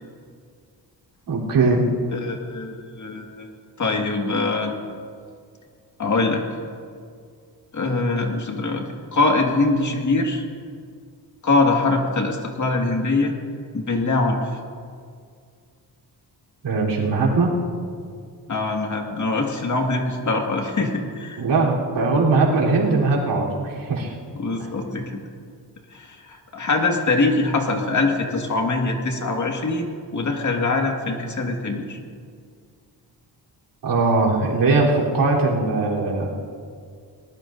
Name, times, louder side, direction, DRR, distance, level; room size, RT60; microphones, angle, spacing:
voice 1, 1.3-1.8 16.6-17.5 21.4-24.2 33.8-36.3, right 3 dB, 75° right, -4 dB, 3.8 m, -20 dB
voice 2, 2.1-3.5 3.8-4.7 6.0-6.4 7.7-10.4 11.4-13.4 13.7-14.6 18.5-21.4 24.4-25.2 25.9-32.0, left 3 dB, 45° left, 1 dB, 2.0 m, -23 dB
22.5 x 19.5 x 2.7 m, 2.2 s
wide cardioid pair, 130°, 42 cm